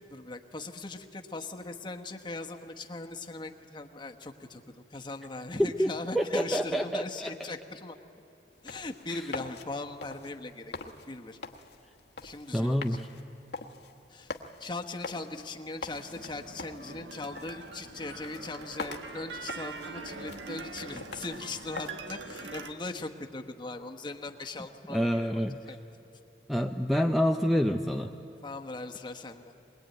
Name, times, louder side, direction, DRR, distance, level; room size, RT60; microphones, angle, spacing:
voice 1, 0.1-8.0 8.6-10.7 11.1-11.4 12.2-13.1 14.1-14.3 14.6-25.8 28.4-29.5, left 2 dB, 25° left, 4 dB, 1.1 m, -40 dB
voice 2, 5.6-7.3 9.1-9.2 12.5-13.1 24.9-25.6 26.5-28.2, equal, ahead, 5 dB, 0.5 m, -27 dB
sound 1, 8.5-21.9, left 3 dB, 65° left, 1.2 m, -45 dB
sound 2, 15.8-17.4, right 1 dB, 60° right, 5.0 m, -58 dB
sound 3, 16.1-22.7, right 3 dB, 85° right, 1.4 m, -43 dB
21.5 x 21.0 x 9.1 m, 3.0 s
head